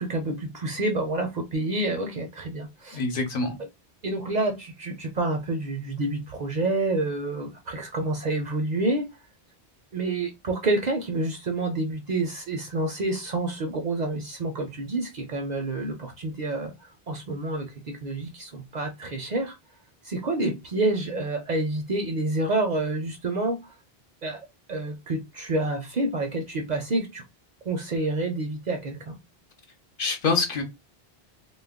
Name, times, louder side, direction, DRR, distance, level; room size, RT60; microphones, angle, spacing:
voice 1, 0.0-3.0 4.0-9.1 9.9-16.7 17.1-19.6 20.1-23.6 24.2-24.4 24.7-27.2 27.7-29.1, right 2 dB, 55° right, 0.5 m, -28 dB
voice 2, 2.9-3.6 30.0-30.6, left 4 dB, 60° left, 0.9 m, -25 dB
2.2 x 2.0 x 3.5 m
omnidirectional pair, 1.0 m